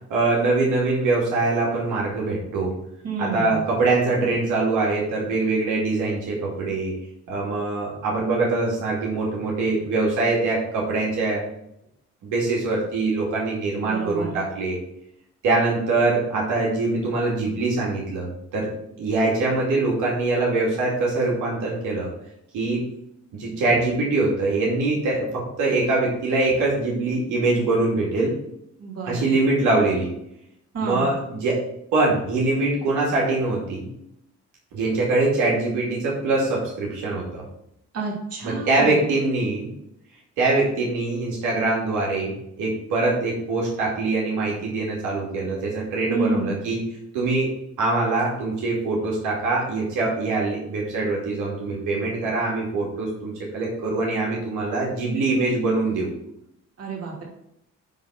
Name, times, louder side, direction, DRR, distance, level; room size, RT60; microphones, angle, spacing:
voice 1, 0.1-2.7 3.2-6.9 7.3-11.4 12.2-14.8 15.4-18.7 19.0-22.1 22.5-22.8 23.3-28.3 29.0-30.1 30.8-31.6 31.9-33.9 34.7-37.4 38.4-39.7 40.4-46.8 47.1-47.5 47.8-56.1, right 3 dB, 85° right, -4 dB, 2.5 m, -23 dB
voice 2, 3.0-3.6 13.8-14.4 28.8-29.3 30.7-31.1 37.9-39.0 46.1-46.5 56.8-57.2, right 4 dB, 50° right, -2 dB, 2.9 m, -29 dB
9.3 x 3.9 x 5.8 m, 0.78 s
cardioid pair, 90°, 30 cm